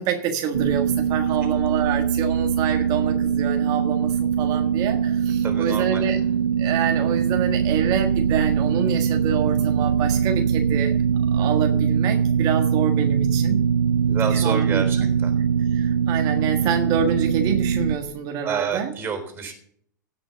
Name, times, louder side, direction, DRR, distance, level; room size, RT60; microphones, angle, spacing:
voice 1, 0.0-6.2 6.6-11.0 11.3-13.7 14.3-15.0 15.7-18.9, right 8 dB, 40° right, 4 dB, 1.6 m, -27 dB
sound 1, 0.5-18.0, right 7 dB, 80° right, 0.6 m, -22 dB
voice 2, 5.4-6.0 10.7-10.9 14.1-15.3 18.4-19.5, right 6 dB, 20° right, 5 dB, 3.8 m, -29 dB
16.5 x 6.0 x 6.9 m, 0.64 s
hypercardioid pair, 100°, 10 cm